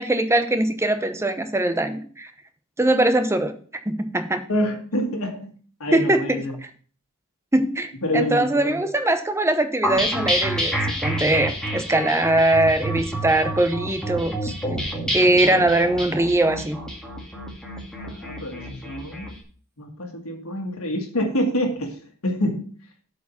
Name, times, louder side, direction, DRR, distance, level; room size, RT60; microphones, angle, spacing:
voice 1, 0.0-2.3 2.8-3.5 3.9-4.4 5.9-6.4 7.5-14.5 15.1-16.8, right 1 dB, 10° right, 8 dB, 0.9 m, -21 dB
voice 2, 4.5-5.5 5.8-6.6 8.0-8.8 18.0-19.3 19.8-22.7, equal, 70° left, 3 dB, 1.8 m, -27 dB
sound 1, 9.8-19.3, equal, 5° left, 2.1 m, -28 dB
8.1 x 4.9 x 7.2 m, 0.43 s
head